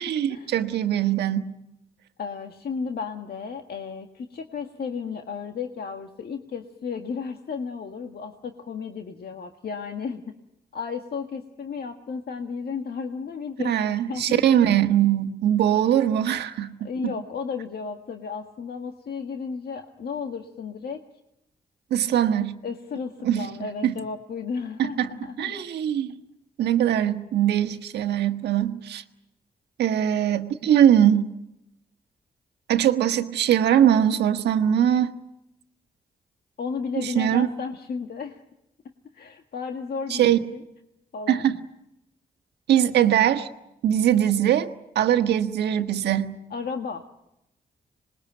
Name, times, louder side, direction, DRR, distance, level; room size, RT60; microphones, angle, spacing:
voice 1, 0.0-1.5 13.6-17.1 21.9-22.5 23.2-23.5 23.8-23.9 24.8-25.1 25.4-26.2 26.6-29.0 29.8-31.3 32.7-35.1 37.0-37.5 40.1-40.4 41.3-41.6 42.7-43.5 43.8-44.7 44.9-46.3, right 10 dB, 90° right, 7 dB, 1.4 m, -21 dB
voice 2, 2.2-10.3 10.7-14.6 16.8-21.0 22.6-25.5 36.6-38.4 39.1-40.6 41.1-41.4 46.5-47.0, left 5 dB, 70° left, 5 dB, 1.8 m, -33 dB
26.5 x 20.5 x 9.1 m, 0.88 s
supercardioid pair, 50°, 17 cm